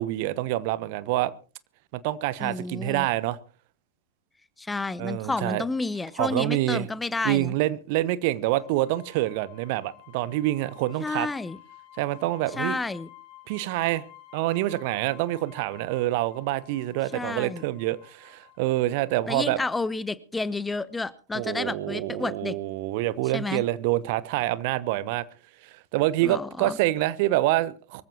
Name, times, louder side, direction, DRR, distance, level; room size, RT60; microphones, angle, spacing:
voice 1, 0.0-1.3 1.9-3.4 5.0-5.7 6.2-6.9 7.2-11.3 12.0-12.8 13.5-14.1 14.3-19.6 21.3-25.2 25.6-28.0, right 16 dB, 50° right, 0.9 m, -26 dB
voice 2, 2.4-3.1 4.6-7.5 11.0-11.6 12.6-13.1 17.1-17.6 19.3-22.6 23.3-23.6 26.2-26.8, left 3 dB, 10° left, 0.8 m, -30 dB
sound 1, 8.6-20.0, left 15 dB, 40° left, 7.7 m, -52 dB
24.5 x 14.5 x 2.9 m
figure-of-eight pair, 90°, 0 cm